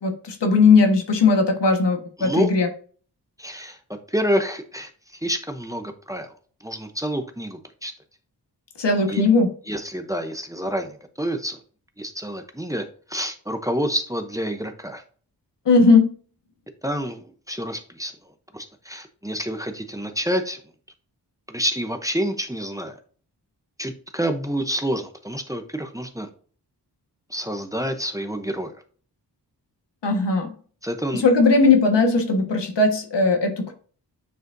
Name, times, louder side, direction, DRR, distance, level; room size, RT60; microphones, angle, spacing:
voice 1, 0.0-2.7 8.8-9.5 15.6-16.1 30.0-30.5 31.1-33.7, left 4 dB, 90° left, 4 dB, 1.5 m, -18 dB
voice 2, 2.2-2.5 3.4-4.9 5.2-6.3 6.6-7.9 9.1-9.2 9.7-11.6 12.0-15.0 16.8-18.1 18.5-20.6 21.5-22.9 23.8-26.3 27.3-28.7 30.8-31.2, equal, 10° right, 6 dB, 0.7 m, -28 dB
9.1 x 4.9 x 2.6 m, 0.43 s
wide cardioid pair, 120°, 41 cm